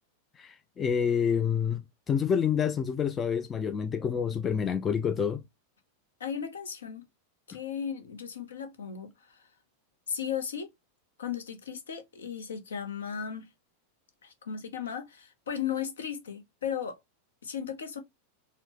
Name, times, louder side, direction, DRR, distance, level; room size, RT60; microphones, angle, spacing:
voice 1, 0.4-5.4, left 7 dB, 20° left, 0.3 m, -28 dB
voice 2, 6.2-7.0 7.5-9.4 10.1-10.7 11.2-13.5 14.2-17.0 17.4-18.0, left 8 dB, 65° left, 0.7 m, -36 dB
4.2 x 2.1 x 2.8 m
figure-of-eight pair, 90°, 0 cm